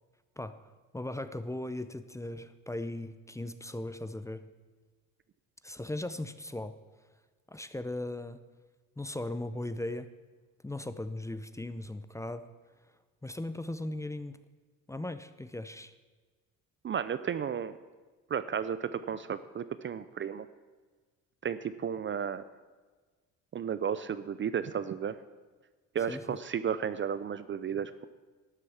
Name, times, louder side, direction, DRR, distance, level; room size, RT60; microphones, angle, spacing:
voice 1, 0.9-4.4 5.6-6.8 7.5-8.4 9.0-10.1 10.6-12.5 13.2-14.4 14.9-15.9 26.1-26.4, left 1 dB, 10° left, 12 dB, 0.6 m, -38 dB
voice 2, 16.8-17.8 18.3-20.5 21.4-22.4 23.5-25.2 25.9-28.0, right 8 dB, 35° right, 14 dB, 0.5 m, -33 dB
12.5 x 8.2 x 7.2 m, 1.3 s
supercardioid pair, 85°, 36 cm